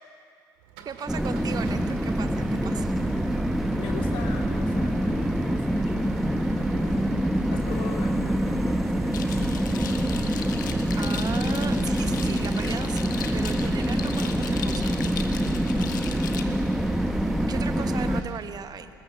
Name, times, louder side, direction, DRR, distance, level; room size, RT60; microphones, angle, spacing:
sound 1, 0.6-18.5, right 7 dB, 65° right, 2.0 m, -40 dB
voice 1, 0.8-3.0 10.9-14.9 17.5-18.9, right 7 dB, 40° right, 10 dB, 1.3 m, -37 dB
sound 2, 1.1-18.2, equal, ahead, 1.2 m, -26 dB
voice 2, 3.8-7.1 7.5-10.2, left 5 dB, 55° left, 1 dB, 3.3 m, -41 dB
sound 3, 9.1-16.4, left 7 dB, 75° left, 1.2 m, -38 dB
26.5 x 20.5 x 7.1 m, 2.3 s
figure-of-eight pair, 55°, 10 cm